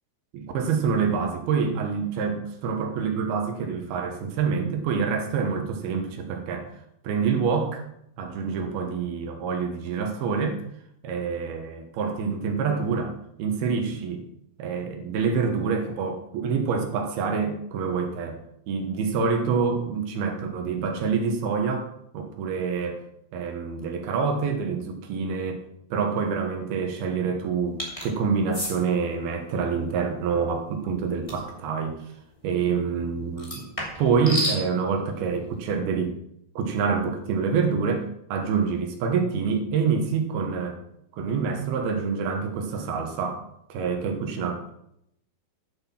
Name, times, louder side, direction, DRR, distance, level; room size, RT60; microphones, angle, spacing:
voice 1, 0.3-6.7 7.0-7.8 8.2-10.6 11.0-14.3 14.6-18.4 18.7-21.9 22.1-23.0 23.3-25.6 25.9-32.0 32.4-33.7 34.0-36.2 36.6-40.8 41.1-43.4 43.7-44.7, right 5 dB, 70° right, 4 dB, 3.1 m, -26 dB
sound 1, 27.8-28.1 28.5-28.7 31.3-31.5 33.4-34.6, equal, 10° left, 2.0 m, -30 dB
10.5 x 7.6 x 5.9 m, 0.75 s
omnidirectional pair, 4.7 m